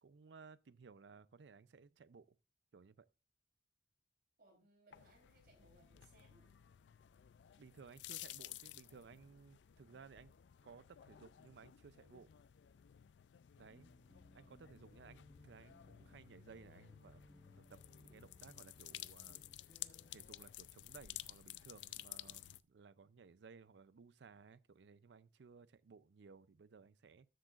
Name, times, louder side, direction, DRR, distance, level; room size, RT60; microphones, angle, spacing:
voice 1, 0.0-2.4 2.7-3.1 7.6-10.3 10.6-12.3 13.6-13.9 14.3-17.2 17.5-19.4 20.1-27.3, right 5 dB, 80° right, 0.5 m, -59 dB
voice 2, 4.4-6.5, right 2 dB, 60° right, 3.6 m, -68 dB
sound 1, 4.9-22.6, left 13 dB, 85° left, 0.4 m, -54 dB
sound 2, 13.7-20.1, left 1 dB, 20° left, 1.0 m, -66 dB
13.0 x 7.7 x 2.4 m
head